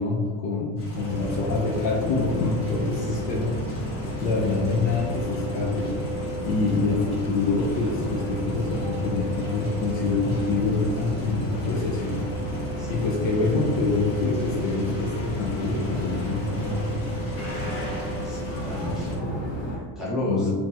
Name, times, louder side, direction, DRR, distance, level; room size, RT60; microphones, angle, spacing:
voice 1, 0.0-3.6 4.2-5.9 6.5-12.2 12.9-16.9 20.3-20.5, left 3 dB, 45° left, -2 dB, 0.5 m, -26 dB
sound 1, 0.8-19.2, left 1 dB, 30° left, 1.0 m, -41 dB
sound 2, 0.9-19.8, equal, 65° left, 1.2 m, -31 dB
voice 2, 3.0-3.4 12.8-13.1 18.2-19.3 19.7-20.5, left 1 dB, ahead, -8 dB, 0.5 m, -32 dB
3.3 x 2.1 x 2.7 m, 1.5 s
cardioid pair, 145°, 47 cm